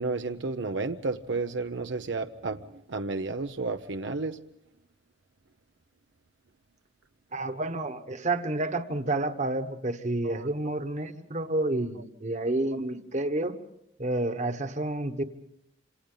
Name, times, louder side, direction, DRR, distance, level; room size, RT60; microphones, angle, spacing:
voice 1, 0.0-2.6 2.9-4.4 10.2-10.4, right 3 dB, 75° right, 7 dB, 0.7 m, -31 dB
voice 2, 7.3-13.6 14.0-15.2, right 2 dB, 40° right, 9 dB, 1.3 m, -29 dB
27.5 x 27.0 x 3.9 m, 0.76 s
head